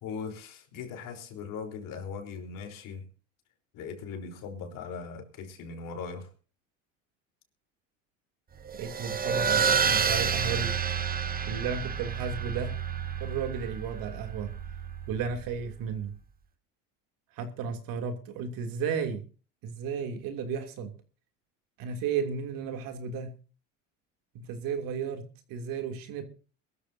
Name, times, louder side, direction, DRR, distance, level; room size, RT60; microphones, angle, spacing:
voice 1, 0.0-3.1 3.7-6.3, left 5 dB, 60° left, 4 dB, 4.1 m, -39 dB
sound 1, 8.7-15.7, right 7 dB, 25° right, 1.4 m, -30 dB
voice 2, 8.7-10.7 11.4-12.8 13.2-14.5 15.1-16.1 17.4-19.2 19.6-20.9 21.8-23.3 24.3-26.2, right 6 dB, 65° right, 5 dB, 3.0 m, -33 dB
22.5 x 13.5 x 2.8 m, 0.36 s
supercardioid pair, 95°, 37 cm